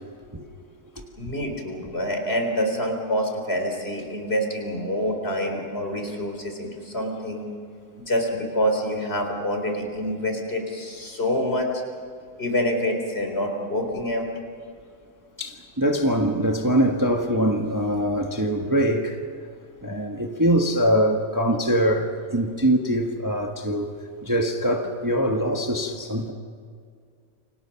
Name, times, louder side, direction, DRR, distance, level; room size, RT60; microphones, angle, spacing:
voice 1, 1.2-7.5 8.1-11.7 12.4-14.3, equal, 45° left, 4.2 m, -26 dB
voice 2, 15.4-19.2 19.8-23.9 24.2-26.3, equal, 15° right, 1.4 m, -23 dB
29.0 x 26.0 x 5.8 m
omnidirectional pair, 1.5 m